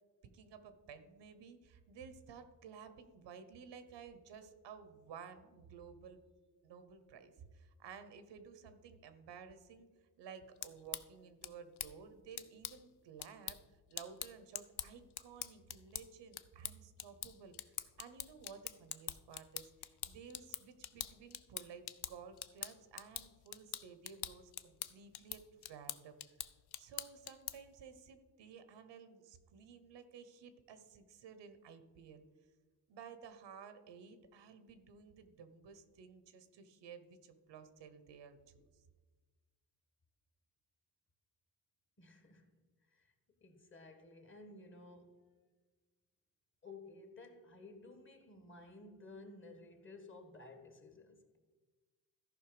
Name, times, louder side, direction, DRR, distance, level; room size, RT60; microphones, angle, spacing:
voice 1, 0.2-6.2 6.6-9.9 10.2-13.6 13.9-26.2 26.8-32.2 32.9-38.7, right 6 dB, 85° right, 10 dB, 1.0 m, -54 dB
sound 1, 10.4-27.8, left 12 dB, 65° left, 0.6 m, -47 dB
voice 2, 42.0-42.5 42.9-43.1 43.4-45.2 46.6-51.4, left 3 dB, 30° left, 6 dB, 1.4 m, -55 dB
14.0 x 5.5 x 4.9 m, 1.3 s
cardioid pair, 105°, 42 cm